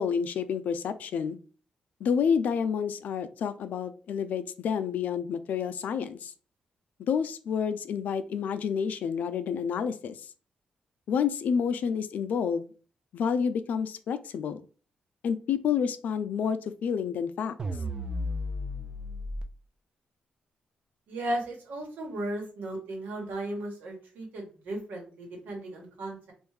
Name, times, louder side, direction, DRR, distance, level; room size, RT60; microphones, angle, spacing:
voice 1, 0.0-1.4 2.0-6.3 7.1-10.3 11.1-12.7 13.1-14.6 15.2-17.5, left 7 dB, 70° left, 12 dB, 0.4 m, -29 dB
sound 1, 17.6-19.4, left 1 dB, 30° right, 0.5 m, -33 dB
voice 2, 21.1-26.3, right 1 dB, 90° right, 0 dB, 1.4 m, -35 dB
3.5 x 2.6 x 3.2 m, 0.38 s
cardioid pair, 130°, 3 cm